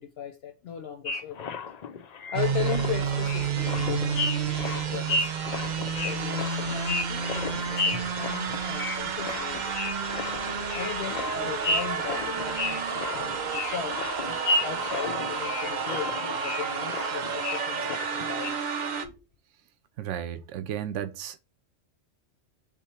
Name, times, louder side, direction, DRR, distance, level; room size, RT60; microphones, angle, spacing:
voice 1, 0.0-1.6 2.3-4.3 4.6-5.4 6.0-9.9 10.7-14.0 14.6-18.6 19.0-19.2, left 9 dB, 65° left, 0.7 m, -37 dB
sound 1, 1.1-18.5, left 3 dB, 90° left, 0.3 m, -33 dB
sound 2, 2.3-19.0, right 6 dB, 50° right, 0.6 m, -30 dB
voice 2, 20.0-21.4, right 10 dB, 75° right, 0.9 m, -34 dB
3.7 x 3.0 x 4.1 m
omnidirectional pair, 1.3 m